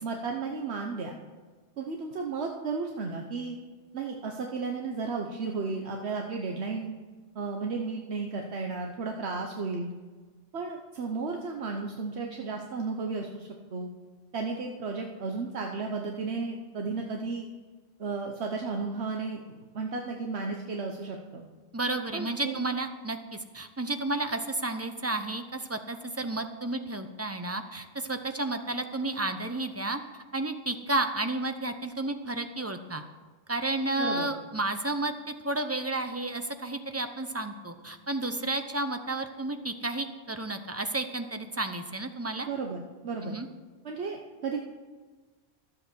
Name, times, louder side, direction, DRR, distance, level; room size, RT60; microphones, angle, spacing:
voice 1, 0.0-1.1 1.8-3.6 3.9-6.9 7.3-9.9 10.5-13.9 14.3-17.5 18.0-21.5 22.1-22.5 34.0-34.3 42.4-43.4 43.8-44.6, right 4 dB, 80° right, 1 dB, 1.2 m, -34 dB
voice 2, 21.7-33.0 33.5-42.5 43.2-43.5, right 2 dB, 15° right, 7 dB, 0.7 m, -32 dB
13.0 x 7.8 x 6.2 m, 1.4 s
omnidirectional pair, 1.1 m